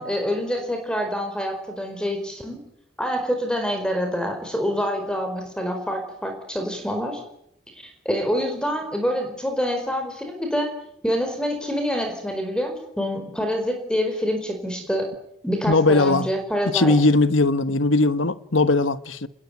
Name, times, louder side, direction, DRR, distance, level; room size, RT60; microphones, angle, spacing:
voice 1, 0.0-2.6 3.0-7.2 8.0-10.7 11.0-15.1 15.4-16.9, equal, 5° left, 4.7 m, -26 dB
voice 2, 15.7-16.3 16.6-19.3, left 2 dB, 80° left, 1.4 m, -19 dB
27.0 x 21.0 x 9.4 m
head